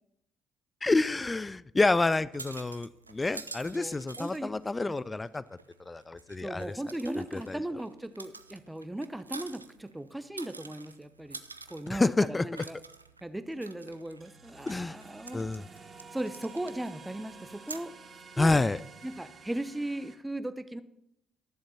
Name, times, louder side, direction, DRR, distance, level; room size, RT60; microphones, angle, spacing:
voice 1, 0.8-5.4 5.9-6.7 7.2-7.6 11.9-12.5 14.7-15.0 15.3-15.6 18.4-18.8, left 3 dB, 20° left, 18 dB, 0.4 m, -28 dB
sound 1, 2.0-19.2, right 3 dB, 90° right, 0.3 m, -49 dB
voice 2, 3.6-4.5 4.9-5.0 6.4-11.4 11.7-12.8 13.2-15.4 16.1-17.9 18.4-18.6 19.0-20.8, right 1 dB, 10° right, 12 dB, 0.8 m, -37 dB
sound 2, 14.2-20.2, right 5 dB, 40° right, 1.2 m, -51 dB
11.0 x 7.2 x 5.7 m, 0.79 s
figure-of-eight pair, 45°, 0 cm